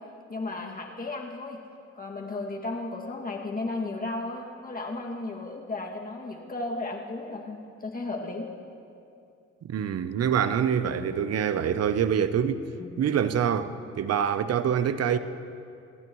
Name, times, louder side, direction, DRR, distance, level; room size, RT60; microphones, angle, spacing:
voice 1, 0.3-1.6 1.9-8.5 10.8-11.1 12.8-13.0, left 2 dB, 30° left, 2.3 m, -34 dB
voice 2, 9.6-12.7 13.0-15.2, right 8 dB, 55° right, 0.8 m, -25 dB
26.0 x 15.0 x 3.2 m
cardioid pair, 90°, 30 cm